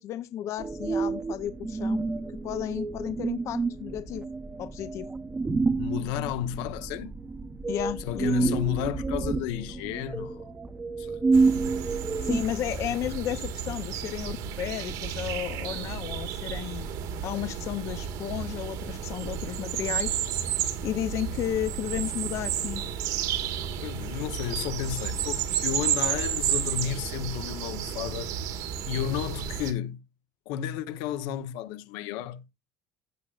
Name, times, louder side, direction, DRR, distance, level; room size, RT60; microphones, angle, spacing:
voice 1, 0.0-2.0 2.4-4.3 4.6-5.1 7.7-8.5 12.2-17.0 17.2-20.2 20.8-22.8, left 11 dB, 45° left, 0.5 m, -33 dB
sound 1, 0.6-12.4, right 3 dB, 15° right, 0.7 m, -29 dB
voice 2, 5.8-7.1 8.0-10.6 11.0-11.2 23.8-28.3 28.8-30.0 30.5-32.4, left 11 dB, 75° left, 0.9 m, -32 dB
sound 2, 11.3-29.7, right 9 dB, 60° right, 1.5 m, -32 dB
16.0 x 6.3 x 2.4 m
cardioid pair, 160°, 7 cm